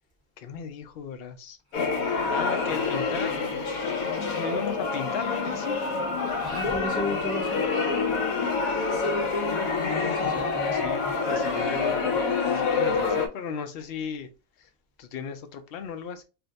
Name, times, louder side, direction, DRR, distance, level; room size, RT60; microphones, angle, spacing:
voice 1, 0.4-1.6 2.3-3.3 4.4-5.8 10.7-12.2 12.5-14.3 14.6-14.7 15.0-16.2, left 7 dB, 60° left, 0.7 m, -35 dB
sound 1, 1.7-13.3, left 4 dB, 85° left, 1.0 m, -27 dB
voice 2, 6.4-7.6 10.2-11.1, left 1 dB, 5° left, 0.7 m, -34 dB
2.7 x 2.2 x 3.8 m
omnidirectional pair, 1.4 m